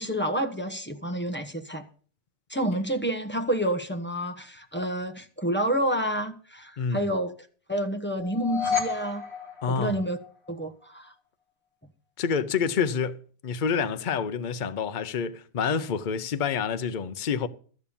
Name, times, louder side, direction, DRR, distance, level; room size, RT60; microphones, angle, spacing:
voice 1, 0.0-1.9 2.5-7.3 7.7-9.2 9.7-10.2 10.5-11.1, right 1 dB, 10° left, 0.9 m, -29 dB
voice 2, 6.8-7.1 9.6-10.0 12.2-13.2 13.4-17.5, left 6 dB, 55° left, 0.5 m, -28 dB
sound 1, 8.2-10.5, left 6 dB, 40° left, 2.2 m, -31 dB
13.5 x 7.1 x 6.9 m
omnidirectional pair, 1.8 m